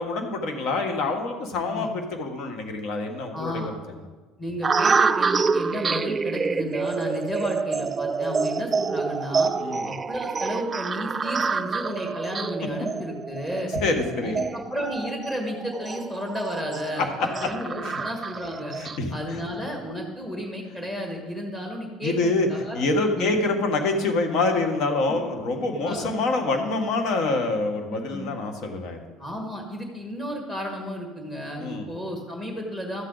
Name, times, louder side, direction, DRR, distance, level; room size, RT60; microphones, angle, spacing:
voice 1, 0.0-3.5 9.6-9.9 13.8-14.4 17.0-17.1 17.8-18.0 18.7-19.4 22.0-22.5 22.7-29.0 31.6-31.9, left 3 dB, 60° left, 5 dB, 1.6 m, -26 dB
voice 2, 3.3-3.7 4.4-9.5 9.8-13.7 14.2-18.7 19.1-22.8 23.1-23.4 25.1-25.2 25.8-26.1 27.9-28.3 29.2-33.0, equal, 20° left, 1 dB, 1.8 m, -33 dB
sound 1, 4.6-19.0, right 5 dB, 25° right, 0.3 m, -27 dB
13.0 x 7.4 x 4.0 m, 1.3 s
cardioid pair, 125°, 0 cm